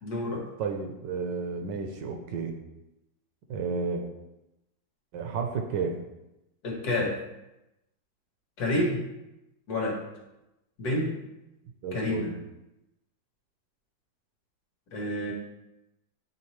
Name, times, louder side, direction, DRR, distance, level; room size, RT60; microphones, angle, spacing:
voice 1, 0.0-0.4 6.6-7.2 8.6-9.1 9.7-10.0 10.8-11.2 11.9-12.3 14.9-15.3, left 1 dB, 55° left, -1 dB, 1.5 m, -28 dB
voice 2, 0.6-2.5 3.5-4.0 5.1-6.0 11.8-12.3, right 5 dB, 75° right, 4 dB, 1.2 m, -32 dB
8.7 x 3.8 x 3.1 m, 0.93 s
omnidirectional pair, 2.1 m